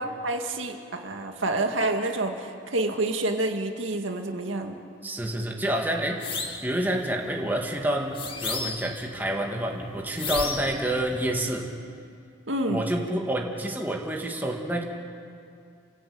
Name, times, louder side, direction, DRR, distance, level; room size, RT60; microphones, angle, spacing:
voice 1, 0.0-4.8 12.5-12.8, right 2 dB, 85° right, 4 dB, 2.0 m, -28 dB
voice 2, 5.0-6.2 6.6-11.7 12.7-14.8, right 1 dB, 10° right, 0 dB, 2.2 m, -28 dB
sound 1, 6.2-6.7 8.1-9.0 10.2-10.8, left 4 dB, 25° left, 2.0 m, -32 dB
sound 2, 6.3-11.3, equal, 35° right, 3.4 m, -49 dB
30.0 x 16.5 x 8.7 m, 2.4 s
head